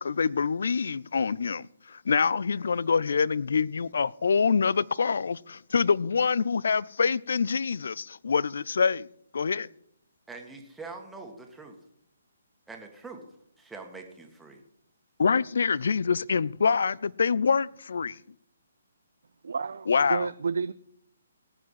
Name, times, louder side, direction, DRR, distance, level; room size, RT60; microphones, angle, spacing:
voice 1, 0.0-9.1 9.3-9.7 15.2-18.2 19.9-20.3, left 5 dB, 65° left, 0.4 m, -25 dB
voice 2, 10.3-11.8 12.7-13.2 13.6-14.6, right 3 dB, 5° right, 1.9 m, -44 dB
voice 3, 19.4-20.7, right 5 dB, 65° right, 0.4 m, -30 dB
18.0 x 8.0 x 5.8 m
figure-of-eight pair, 135°, 0 cm